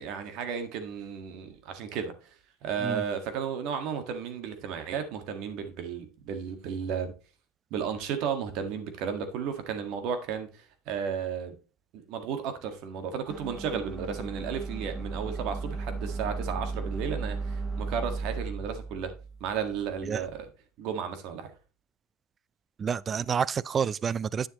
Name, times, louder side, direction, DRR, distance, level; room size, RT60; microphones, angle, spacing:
voice 1, 0.0-2.3 2.6-7.1 7.7-11.5 11.9-19.1 19.4-20.4 20.8-21.5, right 7 dB, 65° right, 1.6 m, -34 dB
sound 1, 13.3-20.4, right 3 dB, 10° right, 0.8 m, -36 dB
voice 2, 22.8-24.5, right 7 dB, 30° right, 0.3 m, -29 dB
9.0 x 7.2 x 3.0 m
supercardioid pair, 105°, 0 cm